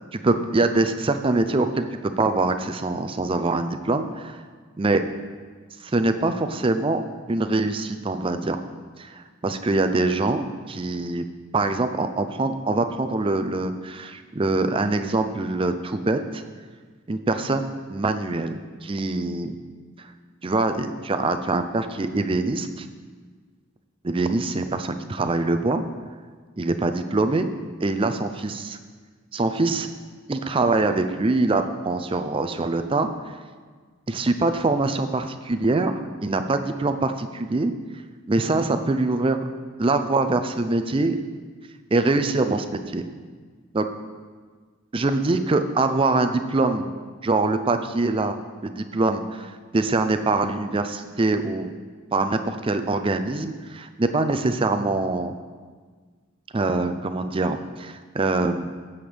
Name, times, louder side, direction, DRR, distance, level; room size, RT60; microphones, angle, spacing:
voice 1, 0.1-1.9 2.2-4.4 4.8-5.0 5.8-7.0 7.3-8.6 9.0-11.2 11.5-16.4 17.1-19.6 20.0-20.1 20.4-22.9 24.0-25.8 26.6-27.5 27.8-28.8 29.3-29.9 30.3-33.1 34.1-37.7 38.3-39.4 39.8-41.2 41.9-43.1 43.7-43.9 44.9-46.9 47.2-48.4 48.6-51.7 52.1-55.3 56.5-58.7, right 2 dB, 25° right, 8 dB, 0.4 m, -24 dB
15.0 x 7.2 x 3.4 m, 1.5 s
head